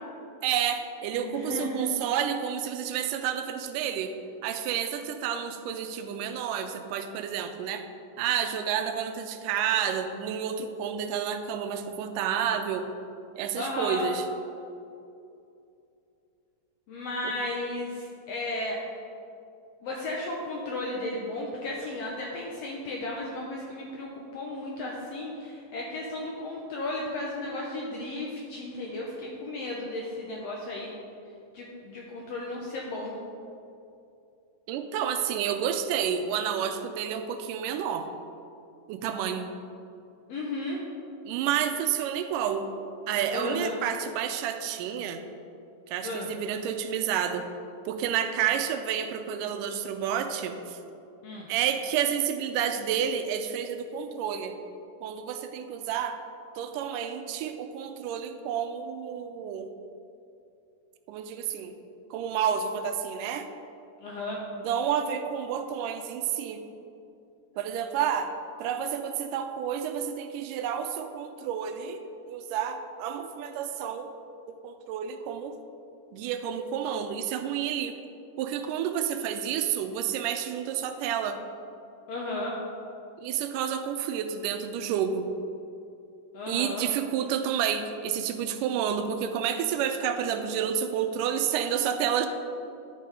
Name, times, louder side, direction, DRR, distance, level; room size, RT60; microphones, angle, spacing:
voice 1, 0.4-4.2 4.4-7.9 8.2-12.9 13.4-14.2 17.2-17.3 34.7-38.1 38.9-39.5 41.3-42.7 43.1-45.2 45.9-47.5 47.9-50.8 51.5-54.6 55.0-56.2 56.6-59.7 61.1-61.8 62.1-63.5 64.5-66.6 67.6-68.3 68.6-74.1 74.5-75.6 76.1-78.0 78.4-81.4 83.2-85.2 86.5-92.3, right 8 dB, 85° right, 7 dB, 2.1 m, -30 dB
voice 2, 1.2-1.9 13.5-14.1 16.9-18.8 19.8-30.9 31.5-33.2 40.3-40.8 43.3-43.7 46.0-46.3 51.2-51.5 64.0-64.4 82.1-82.6 86.3-86.8, left 2 dB, 75° left, -2 dB, 1.5 m, -34 dB
11.0 x 5.7 x 4.7 m, 2.6 s
omnidirectional pair, 3.8 m